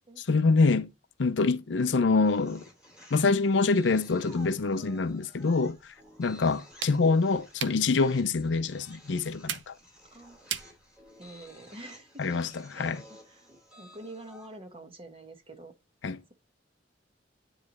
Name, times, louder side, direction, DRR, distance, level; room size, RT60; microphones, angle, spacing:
voice 1, 0.2-0.9 1.2-2.6 3.1-9.8 12.2-13.0 16.0-16.2, left 4 dB, 80° left, 0.6 m, -25 dB
sound 1, 2.2-14.6, equal, 5° right, 2.6 m, -54 dB
sound 2, 5.6-11.5, right 9 dB, 75° right, 0.7 m, -42 dB
voice 2, 11.2-12.2 12.7-15.7, right 2 dB, 30° right, 1.2 m, -47 dB
9.8 x 3.3 x 3.9 m
head